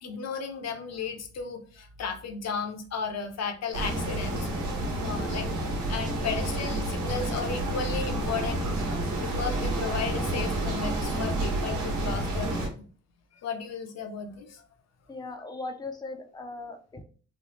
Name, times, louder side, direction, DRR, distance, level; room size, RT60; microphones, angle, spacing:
voice 1, 0.0-4.5 5.0-8.8 9.2-12.8 13.3-14.6, left 5 dB, 60° left, 5 dB, 0.8 m, -34 dB
sound 1, 3.7-12.7, right 1 dB, 75° right, 1.1 m, -29 dB
voice 2, 15.1-17.0, left 3 dB, 15° left, 5 dB, 0.6 m, -38 dB
3.2 x 2.2 x 3.0 m, 0.41 s
cardioid pair, 90°, 30 cm